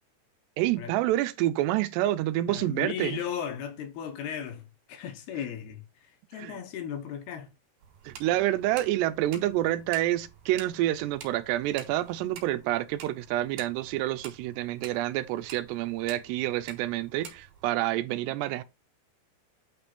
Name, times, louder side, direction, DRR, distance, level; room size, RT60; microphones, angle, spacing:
voice 1, 0.6-3.2 6.4-6.6 8.1-18.6, right 14 dB, 85° right, 2.7 m, -28 dB
voice 2, 2.5-7.5, left 9 dB, 70° left, 2.8 m, -36 dB
sound 1, 7.8-17.6, right 7 dB, 65° right, 3.1 m, -49 dB
8.9 x 3.4 x 4.3 m
omnidirectional pair, 4.9 m